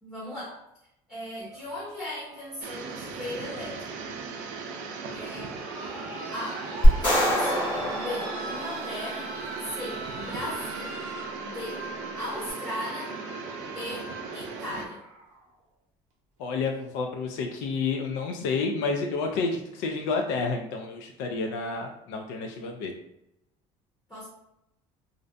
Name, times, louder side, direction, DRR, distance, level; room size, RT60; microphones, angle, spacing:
voice 1, 0.0-0.6 1.1-3.9 5.1-5.6 6.3-6.7 7.0-9.3 9.6-11.0 11.4-13.2 13.7-15.0 24.1-24.3, left 1 dB, 10° left, -10 dB, 0.8 m, -37 dB
sound 1, 1.5-15.5 16.7-16.8, right 2 dB, 60° right, 0.7 m, -41 dB
sound 2, 2.6-14.9, right 5 dB, 85° right, 0.4 m, -38 dB
sound 3, 6.8-9.2, equal, 30° left, 1.0 m, -23 dB
voice 2, 16.4-22.9, left 4 dB, 90° left, 3 dB, 0.4 m, -30 dB
2.5 x 2.1 x 2.5 m, 0.82 s
cardioid pair, 180°, 13 cm